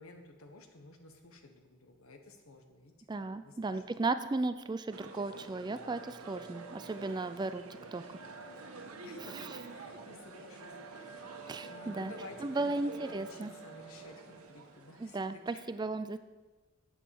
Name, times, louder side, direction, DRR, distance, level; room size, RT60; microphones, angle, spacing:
voice 1, 0.0-2.9 3.4-3.8 9.0-9.4 9.7-11.3 11.6-15.7, left 2 dB, 70° left, 5 dB, 1.3 m, -53 dB
voice 2, 3.1-7.6 7.9-8.0 9.3-9.5 11.5-12.1 12.4-13.5 15.0-16.2, right 3 dB, 20° right, 11 dB, 0.3 m, -35 dB
sound 1, 4.9-15.3, right 3 dB, 80° right, 1.2 m, -48 dB
8.2 x 7.3 x 7.0 m, 1.2 s
head